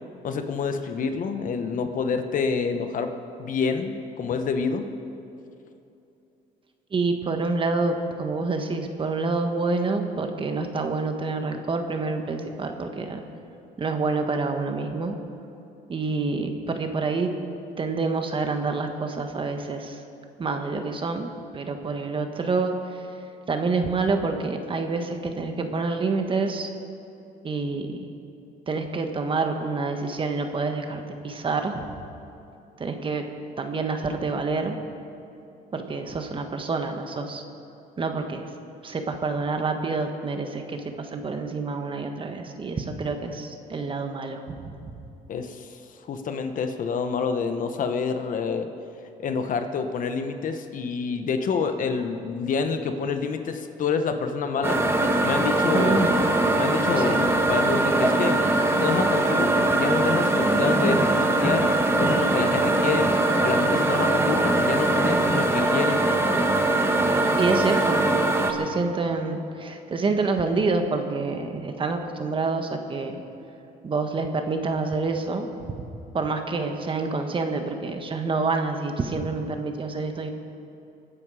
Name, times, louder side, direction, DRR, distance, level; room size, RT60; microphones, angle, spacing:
voice 1, 0.2-3.1 3.4-4.9 45.3-45.8 46.1-48.7 49.2-54.8 55.2-56.3 56.5-58.4 58.8-61.7 62.0-63.1 63.4-66.0, left 5 dB, 50° left, 7 dB, 1.2 m, -27 dB
voice 2, 6.9-13.2 13.8-15.2 15.9-17.3 17.8-20.0 20.4-21.3 21.5-23.1 23.5-26.7 27.4-28.0 28.7-32.0 32.8-33.2 33.6-34.8 35.7-37.4 38.0-38.5 38.8-44.9 55.7-56.2 57.0-57.2 67.4-68.0 68.5-73.2 73.8-75.8 76.1-80.3, right 3 dB, 30° right, 5 dB, 1.4 m, -27 dB
sound 1, 54.6-68.5, right 2 dB, 15° right, 1.5 m, -22 dB
24.5 x 9.9 x 5.0 m, 2.8 s
cardioid pair, 110°, 17 cm